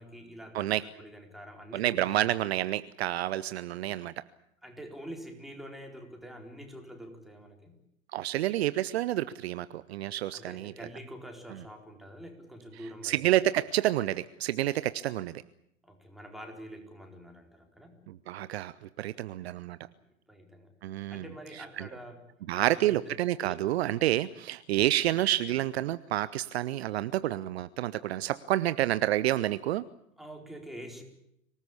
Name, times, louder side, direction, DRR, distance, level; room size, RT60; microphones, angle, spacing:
voice 1, 0.0-2.3 4.6-7.8 10.3-13.5 15.8-18.1 19.8-22.2 22.5-23.1 23.4-23.5 30.2-31.0, equal, ahead, 3 dB, 4.3 m, -46 dB
voice 2, 1.7-4.1 8.1-10.7 13.0-15.3 18.1-19.8 20.8-21.2 21.8-21.9 22.5-29.9, right 14 dB, 50° right, 16 dB, 0.8 m, -29 dB
25.0 x 18.5 x 8.5 m, 0.80 s
figure-of-eight pair, 105°, 41 cm